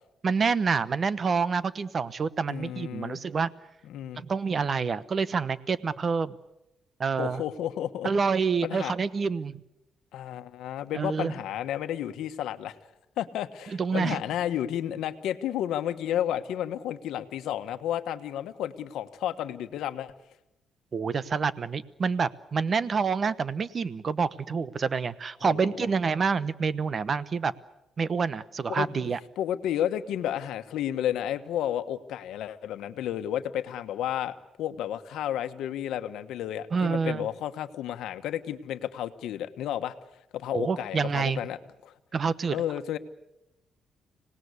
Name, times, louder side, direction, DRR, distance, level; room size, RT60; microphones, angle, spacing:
voice 1, 0.2-3.5 4.2-6.3 7.0-7.4 8.0-9.6 10.9-11.3 13.8-14.2 20.9-27.5 28.0-29.2 36.7-37.3 40.5-41.4 42.1-42.6, right 5 dB, 40° right, 16 dB, 0.9 m, -27 dB
voice 2, 2.5-3.2 3.9-4.2 7.2-8.1 8.6-8.9 10.1-12.8 13.2-20.1 25.4-25.8 28.7-28.9 29.4-39.9 40.3-41.6 41.8-41.9 42.5-43.0, left 11 dB, 85° left, 9 dB, 1.2 m, -32 dB
26.0 x 18.5 x 8.3 m, 0.88 s
cardioid pair, 115°, 0 cm